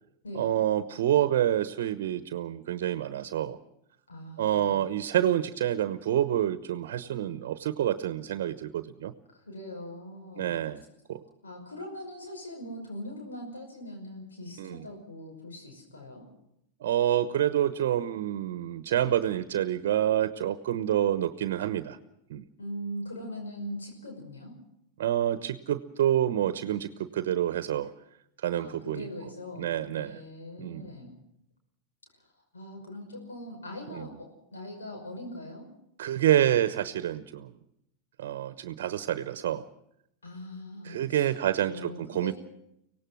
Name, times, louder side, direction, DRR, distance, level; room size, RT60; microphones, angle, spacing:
voice 1, 0.3-3.6 4.4-9.1 10.4-10.8 11.1-11.2 14.6-14.8 16.8-22.0 22.3-22.4 25.0-27.9 28.4-29.1 29.6-30.2 30.6-30.9 33.9-34.1 36.0-37.5 38.2-39.7 40.8-42.3, right 11 dB, 65° right, 12 dB, 1.0 m, -28 dB
voice 2, 4.1-4.9 9.3-10.7 11.4-16.3 22.6-24.6 28.5-31.1 32.1-32.3 32.5-35.7 40.2-41.3 41.6-42.3, left 1 dB, 85° left, 3 dB, 5.6 m, -41 dB
24.5 x 18.0 x 6.3 m, 0.79 s
hypercardioid pair, 95°, 0 cm